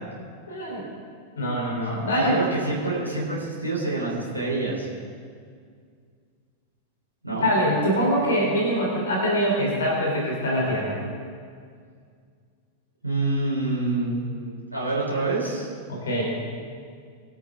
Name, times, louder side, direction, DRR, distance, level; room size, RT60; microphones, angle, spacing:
voice 1, 0.5-0.8 1.4-2.4 7.3-11.0 15.9-16.3, equal, 65° left, -2 dB, 3.3 m, -24 dB
voice 2, 2.2-4.9 7.2-7.5 13.0-15.7, right 2 dB, 85° right, -5 dB, 3.6 m, -27 dB
23.5 x 8.7 x 3.7 m, 2.1 s
figure-of-eight pair, 90°, 0 cm